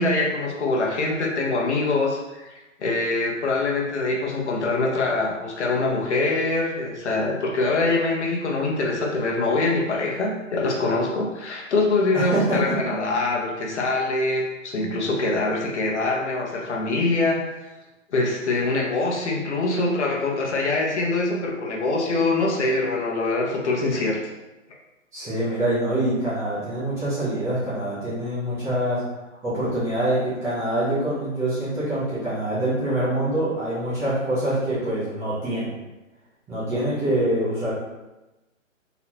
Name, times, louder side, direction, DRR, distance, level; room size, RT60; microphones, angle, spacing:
voice 1, 0.0-17.4 18.1-24.2, left 2 dB, 55° left, -1 dB, 1.2 m, -24 dB
voice 2, 25.1-29.0 29.4-35.7 36.5-37.7, right 1 dB, 5° right, -12 dB, 0.8 m, -25 dB
4.0 x 4.0 x 2.9 m, 1.0 s
hypercardioid pair, 155°, 40 cm